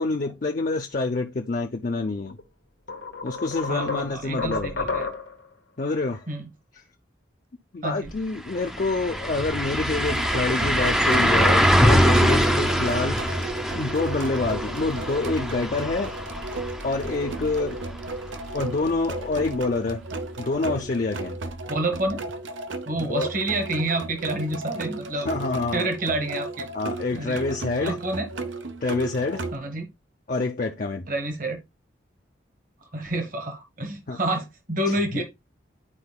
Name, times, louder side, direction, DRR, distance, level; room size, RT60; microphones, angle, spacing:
voice 1, 0.0-2.4 3.2-4.8 5.8-6.3 6.8-6.9 7.7-16.1 16.8-17.8 18.5-20.0 20.4-21.4 23.0-23.3 25.2-25.9 26.7-28.0 28.8-29.4 30.3-31.1 34.1-34.2 34.9-35.0, left 3 dB, 45° left, 0.5 m, -27 dB
sound 1, 2.3-2.4 2.9-5.5, left 4 dB, 75° left, 1.2 m, -31 dB
voice 2, 3.7-5.1 6.3-6.5 7.8-8.1 21.7-22.2 22.9-25.3 25.7-26.7 27.1-27.4 27.8-28.3 29.5-29.9 31.1-31.6 32.9-35.2, right 1 dB, 45° right, 1.2 m, -28 dB
sound 2, 8.1-8.2 8.5-18.3 18.6-18.7 21.5-21.6, equal, 5° right, 0.5 m, -23 dB
sound 3, 10.0-29.6, right 2 dB, 80° right, 0.8 m, -35 dB
11.5 x 4.5 x 2.2 m
head